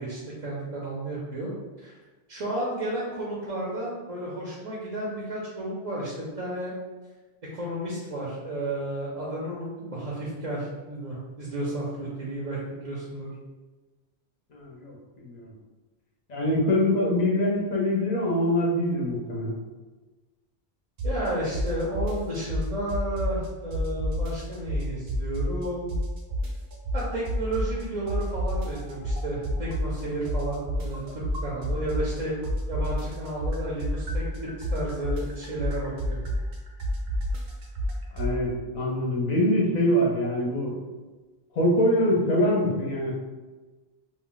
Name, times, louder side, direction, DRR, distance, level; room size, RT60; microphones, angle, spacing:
voice 1, 0.0-1.9 2.3-6.7 7.5-13.3 21.0-25.9 26.9-32.3 32.7-36.2, right 1 dB, 45° right, -5 dB, 0.6 m, -32 dB
voice 2, 14.5-15.5 16.3-19.5 38.1-40.8 41.5-43.2, left 1 dB, 45° left, -3 dB, 0.7 m, -24 dB
sound 1, 21.0-21.3 21.5-23.5 23.7-25.6 25.9-27.8 28.1-32.2 32.4-38.3, equal, 75° right, 0.8 m, -29 dB
2.2 x 2.2 x 3.7 m, 1.2 s
omnidirectional pair, 1.1 m